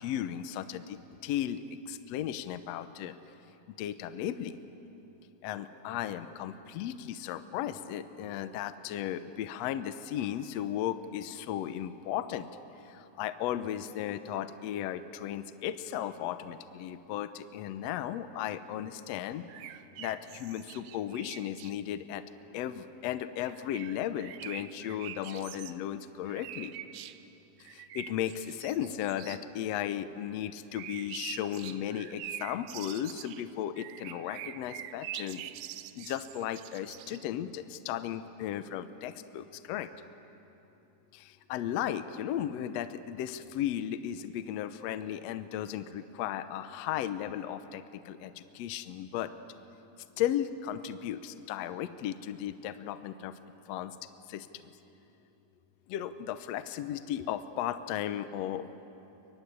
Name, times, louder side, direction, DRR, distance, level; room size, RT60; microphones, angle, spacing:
voice 1, 0.0-3.2 3.8-4.6 5.4-12.5 12.8-19.4 20.0-22.2 22.5-26.7 27.7-35.4 36.0-40.1 41.1-49.3 50.2-53.3 53.7-54.0 54.3-54.7 55.9-58.7, left 11 dB, 70° left, 11 dB, 1.8 m, -35 dB
sound 1, 19.5-21.7 23.4-25.8 26.3-27.2 27.6-29.4 30.7-37.3, right 12 dB, 80° right, 1.4 m, -45 dB
23.5 x 23.0 x 9.7 m, 2.9 s
omnidirectional pair, 3.6 m